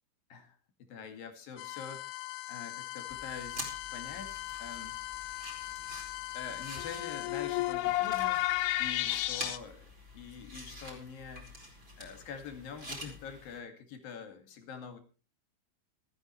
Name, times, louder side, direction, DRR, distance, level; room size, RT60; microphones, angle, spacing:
voice 1, 0.9-2.2 2.5-5.0 6.3-9.8 10.1-11.5 12.0-15.0, left 6 dB, 55° left, 7 dB, 3.3 m, -45 dB
sound 1, 1.6-9.6, left 16 dB, 80° left, 3.2 m, -35 dB
sound 2, 3.1-13.6, equal, 10° right, 3.9 m, -47 dB
27.5 x 9.2 x 3.2 m, 0.33 s
omnidirectional pair, 5.8 m